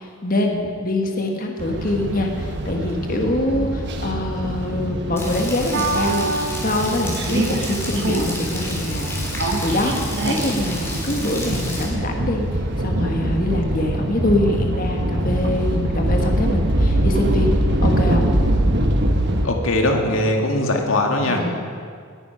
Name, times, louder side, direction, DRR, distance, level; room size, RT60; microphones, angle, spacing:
voice 1, 0.0-6.3 6.6-17.6 17.8-18.3 21.3-21.6, left 1 dB, 40° left, 2 dB, 1.5 m, -24 dB
sound 1, 1.6-19.5, right 1 dB, 55° right, 1.3 m, -23 dB
Rain, 5.2-11.8, left 1 dB, 10° left, 3.2 m, -32 dB
voice 2, 19.4-21.5, left 1 dB, 75° left, 2 dB, 2.0 m, -20 dB
19.0 x 9.8 x 5.7 m, 2.1 s
head